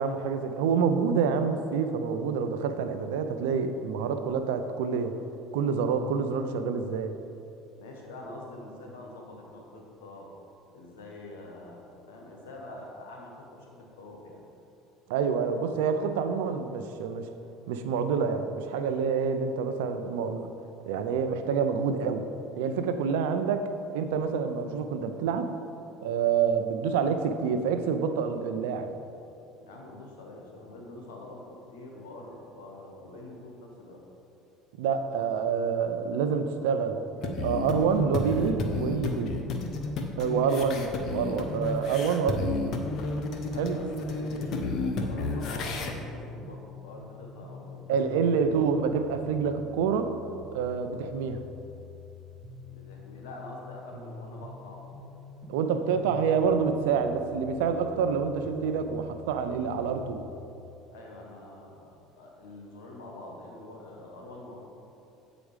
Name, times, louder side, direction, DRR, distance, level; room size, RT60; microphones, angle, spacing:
voice 1, 0.0-5.1 5.5-7.1 15.1-17.3 17.7-20.5 20.9-22.3 22.6-23.7 23.9-25.5 26.0-28.9 34.8-37.0 37.4-39.4 40.2-42.6 43.6-43.8 47.9-50.1 50.5-51.4 55.5-60.2, right 6 dB, 85° right, 8 dB, 0.5 m, -27 dB
voice 2, 7.8-10.3 10.7-14.4 29.6-34.0 43.5-48.4 52.7-54.8 60.9-64.6, left 2 dB, 85° left, 0 dB, 1.4 m, -45 dB
sound 1, 37.2-45.9, left 3 dB, 55° left, 0.9 m, -32 dB
sound 2, 44.4-60.4, left 5 dB, 15° right, 1.0 m, -47 dB
8.0 x 5.0 x 5.0 m, 2.8 s
supercardioid pair, 90°, 0 cm